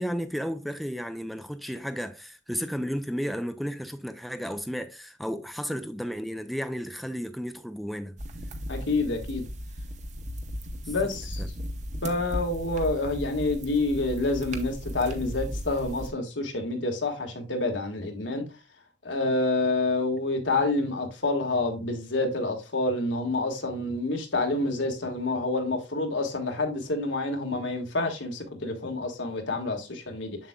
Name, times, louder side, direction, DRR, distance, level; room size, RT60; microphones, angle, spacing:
voice 1, 0.0-8.2 10.8-10.9 11.4-11.5, equal, ahead, 0.5 m, -33 dB
sound 1, 8.2-16.1, equal, 40° right, 0.9 m, -36 dB
voice 2, 8.7-9.4 10.9-11.4 12.0-18.4 19.0-30.4, left 2 dB, 85° left, 1.7 m, -28 dB
7.3 x 7.1 x 2.3 m
head